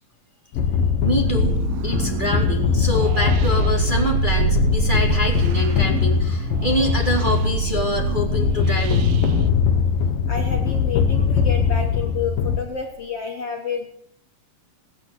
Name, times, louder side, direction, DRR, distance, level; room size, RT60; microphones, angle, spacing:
sound 1, 0.5-12.6, left 6 dB, 75° left, 3.3 m, -21 dB
voice 1, 1.0-9.2, equal, 15° right, 0 dB, 4.0 m, -26 dB
sound 2, 1.2-9.5, right 10 dB, 90° right, 3.0 m, -27 dB
voice 2, 10.3-13.9, left 6 dB, 45° left, 1 dB, 3.6 m, -29 dB
19.5 x 18.0 x 8.2 m, 0.65 s
omnidirectional pair, 4.1 m